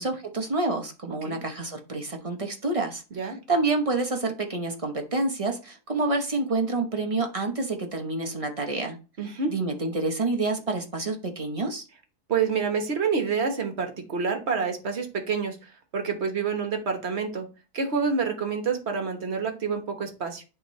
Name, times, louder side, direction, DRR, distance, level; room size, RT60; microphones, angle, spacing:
voice 1, 0.0-3.0 3.5-9.0 9.5-11.8, right 3 dB, 30° right, 3 dB, 0.7 m, -28 dB
voice 2, 3.1-3.4 9.2-9.5 12.3-17.5 17.7-20.4, right 5 dB, 45° right, 5 dB, 1.3 m, -28 dB
10.5 x 3.7 x 3.1 m, 0.33 s
omnidirectional pair, 1.7 m